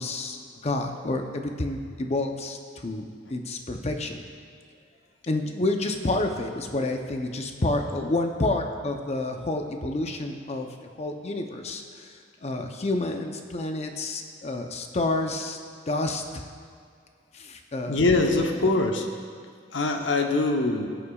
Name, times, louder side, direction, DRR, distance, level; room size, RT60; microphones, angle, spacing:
voice 1, 0.0-2.6 2.8-4.2 5.3-10.7 11.0-12.1 12.4-15.6 15.9-16.4 17.3-18.0 18.3-18.5, left 2 dB, 35° left, 4 dB, 0.7 m, -29 dB
voice 2, 17.9-19.1 19.7-20.9, left 2 dB, 85° left, 3 dB, 0.9 m, -23 dB
17.5 x 6.9 x 2.4 m, 2.2 s
head